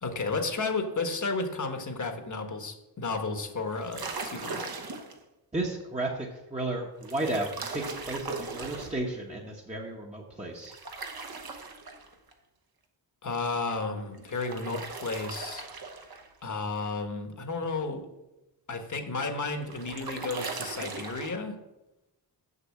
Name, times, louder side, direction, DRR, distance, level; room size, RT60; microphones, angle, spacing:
voice 1, 0.0-4.7 13.2-15.7 16.4-18.0 18.7-21.6, left 3 dB, 45° left, 5 dB, 1.3 m, -32 dB
sound 1, 3.7-5.2 7.0-9.0 10.6-12.3 14.1-16.3 19.2-21.3, right 4 dB, 55° right, 1.1 m, -39 dB
voice 2, 5.5-10.8, right 2 dB, 15° right, -2 dB, 1.0 m, -33 dB
6.9 x 6.8 x 7.5 m, 0.97 s
wide cardioid pair, 165°, 43 cm